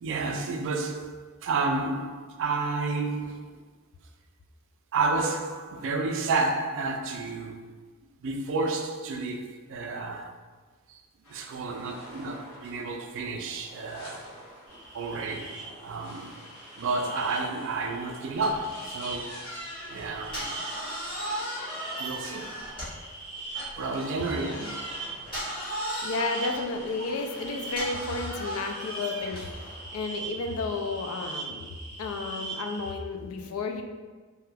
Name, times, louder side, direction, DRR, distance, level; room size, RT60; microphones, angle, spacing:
voice 1, 0.0-1.2 1.4-3.4 4.9-7.8 8.2-10.4 10.9-11.0 11.3-14.3 14.9-16.3 16.8-19.5 19.9-20.5 22.0-22.5 23.8-24.7 25.8-26.0, right 3 dB, 60° right, 4 dB, 0.3 m, -31 dB
sound 1, 11.2-31.1, equal, 80° left, 1.0 m, -49 dB
sound 2, 14.7-32.9, right 3 dB, 20° right, 0.9 m, -42 dB
sound 3, 18.3-23.1 23.5-29.6, equal, 25° left, 1.1 m, -37 dB
voice 2, 24.3-24.8 26.0-29.6 29.9-31.7 32.0-33.8, left 3 dB, 65° left, 4 dB, 0.4 m, -32 dB
2.8 x 2.2 x 3.3 m, 1.4 s
head